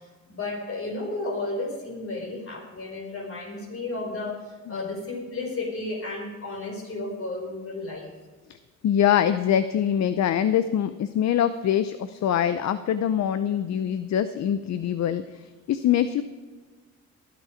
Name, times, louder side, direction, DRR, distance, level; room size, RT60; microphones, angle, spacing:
voice 1, 0.3-8.1, left 2 dB, 45° left, 2 dB, 4.8 m, -33 dB
voice 2, 8.8-15.4 15.7-16.2, left 9 dB, 65° left, 12 dB, 0.8 m, -24 dB
18.0 x 11.5 x 5.1 m, 1.4 s
cardioid pair, 90°, 30 cm